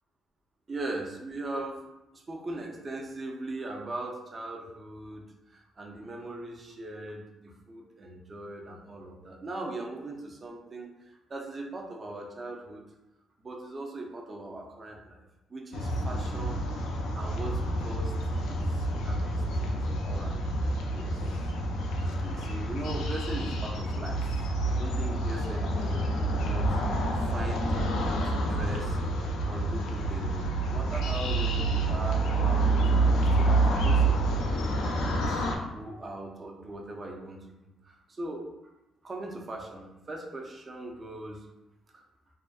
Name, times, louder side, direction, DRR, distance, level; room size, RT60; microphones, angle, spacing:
voice 1, 0.7-1.9 2.1-12.8 13.4-15.2 15.5-16.6 17.2-20.4 20.9-21.5 21.9-24.3 24.7-26.8 27.2-34.2 34.8-37.4 37.8-38.5 39.0-41.4 41.9-42.0, right 2 dB, 35° right, 0 dB, 0.5 m, -40 dB
sound 1, 15.7-35.5, right 2 dB, 85° left, 0.4 m, -28 dB
2.4 x 2.2 x 2.4 m, 0.94 s
cardioid pair, 90°, 0 cm